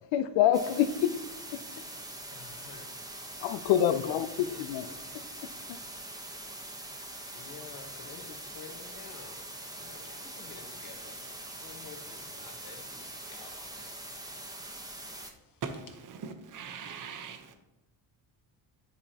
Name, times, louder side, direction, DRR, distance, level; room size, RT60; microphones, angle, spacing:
voice 1, 0.1-1.1 1.5-1.6 3.4-4.9 5.7-5.8, left 10 dB, 90° left, 0.6 m, -26 dB
sound 1, 0.5-15.3, right 1 dB, 10° right, 1.0 m, -43 dB
voice 2, 2.3-2.9 4.4-5.0 7.3-11.3 11.6-14.0 15.2-15.6, left 6 dB, 50° left, 1.3 m, -51 dB
voice 3, 15.6-17.6, right 6 dB, 45° right, 1.0 m, -40 dB
9.9 x 4.9 x 2.9 m
cardioid pair, 95°, 44 cm